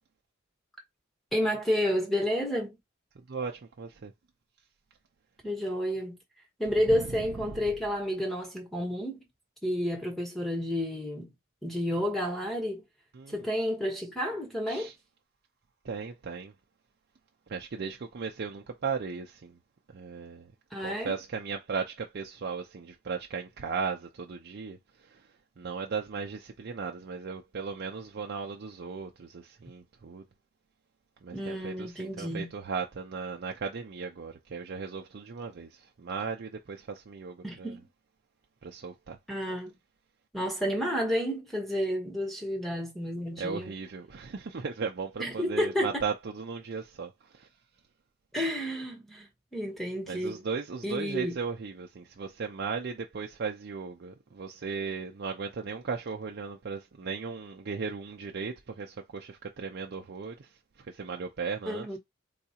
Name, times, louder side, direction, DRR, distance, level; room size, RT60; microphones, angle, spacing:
voice 1, 1.3-2.8 5.4-6.2 6.6-9.2 9.6-11.3 11.6-12.8 13.3-14.9 20.7-21.2 31.3-32.6 37.4-37.8 39.3-39.7 40.3-43.7 45.2-46.0 48.3-50.4 50.8-51.4 61.7-62.0, equal, ahead, 1.1 m, -30 dB
voice 2, 3.3-4.1 6.9-7.6 13.1-13.4 14.7-14.9 15.8-16.5 17.5-19.6 19.9-20.5 20.8-25.2 25.6-30.2 31.2-37.7 38.6-39.2 43.4-47.5 50.1-60.5 60.9-62.0, right 5 dB, 55° right, 0.5 m, -36 dB
3.9 x 2.4 x 2.8 m
head